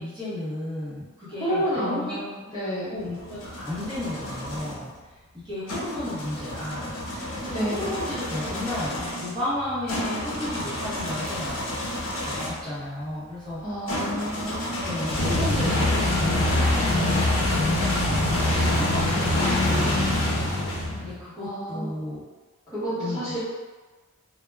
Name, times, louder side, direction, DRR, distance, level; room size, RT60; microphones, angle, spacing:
voice 1, 0.0-2.2 2.9-4.9 5.3-11.8 12.2-13.6 14.8-20.6 21.0-22.2 22.9-23.4, left 1 dB, 20° right, -12 dB, 0.8 m, -34 dB
voice 2, 1.4-2.9 7.5-7.9 13.6-14.6 21.4-21.9 22.7-23.4, equal, 15° left, -12 dB, 0.8 m, -30 dB
sound 1, 3.0-4.8 5.7-12.7 13.9-21.2, left 1 dB, 65° left, 0.6 m, -26 dB
2.2 x 2.0 x 3.2 m, 1.3 s
head